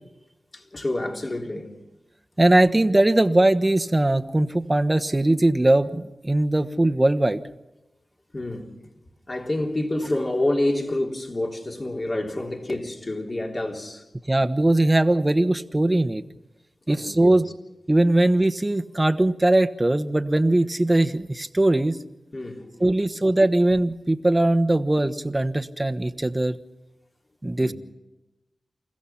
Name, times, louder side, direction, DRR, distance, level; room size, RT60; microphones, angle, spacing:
voice 1, 0.5-1.7 8.3-8.7 9.3-14.0 16.9-17.4 22.3-22.9 27.6-27.7, left 1 dB, 45° left, 3.6 m, -28 dB
voice 2, 2.4-7.4 14.3-16.2 16.9-17.5 17.9-22.0 22.8-26.6 27.4-27.7, right 1 dB, 25° right, 1.2 m, -20 dB
29.0 x 15.5 x 5.9 m
cardioid pair, 40°, 0 cm